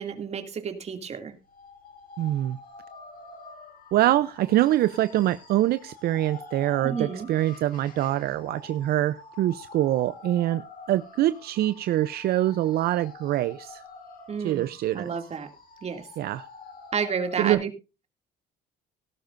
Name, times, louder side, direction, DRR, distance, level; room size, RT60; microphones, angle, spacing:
voice 1, 0.0-1.4 6.8-7.3 14.3-15.5 15.8-16.1 16.9-17.7, right 6 dB, 40° right, 6 dB, 2.5 m, -31 dB
sound 1, 1.4-17.6, left 3 dB, 55° left, 6.6 m, -47 dB
voice 2, 2.2-2.6 3.9-10.6 10.9-13.8 14.4-15.1 16.2-16.4 17.4-17.6, right 14 dB, 65° right, 15 dB, 0.6 m, -24 dB
17.5 x 12.0 x 2.6 m, 0.29 s
cardioid pair, 110°, 17 cm